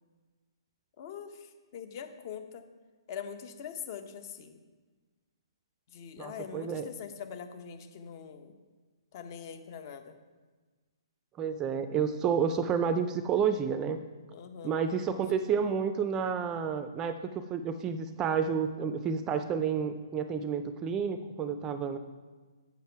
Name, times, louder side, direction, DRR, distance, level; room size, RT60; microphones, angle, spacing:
voice 1, 1.0-2.6 3.1-4.6 5.9-8.5 9.1-10.2 14.3-14.8, left 7 dB, 45° left, 8 dB, 0.9 m, -43 dB
voice 2, 6.2-6.9 11.4-14.0 14.6-22.0, right 6 dB, 20° right, 10 dB, 0.4 m, -30 dB
8.0 x 7.2 x 4.6 m, 1.4 s
hypercardioid pair, 140°, 3 cm